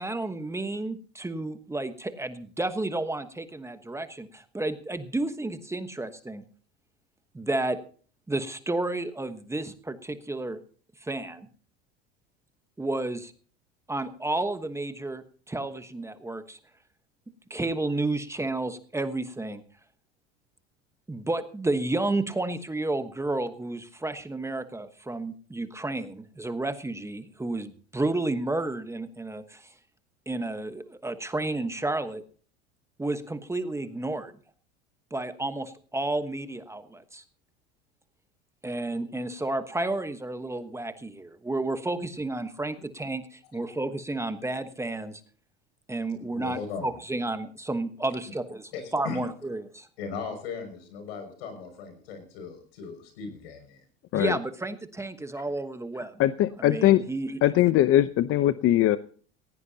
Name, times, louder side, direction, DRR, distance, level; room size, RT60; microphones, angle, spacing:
voice 1, 0.0-6.4 7.3-7.8 8.3-10.6 11.0-11.5 12.8-13.3 13.9-16.6 17.5-19.6 21.1-29.7 30.3-32.2 33.0-34.3 35.1-37.2 38.6-45.2 45.9-49.9 54.1-56.1 56.6-57.3, right 2 dB, 10° right, 9 dB, 1.2 m, -31 dB
voice 2, 46.3-46.9 48.7-49.2 50.0-53.8, left 5 dB, 85° left, 7 dB, 6.3 m, -38 dB
voice 3, 56.2-57.0 57.4-59.0, left 13 dB, 45° left, 13 dB, 0.8 m, -21 dB
18.5 x 16.5 x 2.8 m, 0.44 s
supercardioid pair, 110°, 30 cm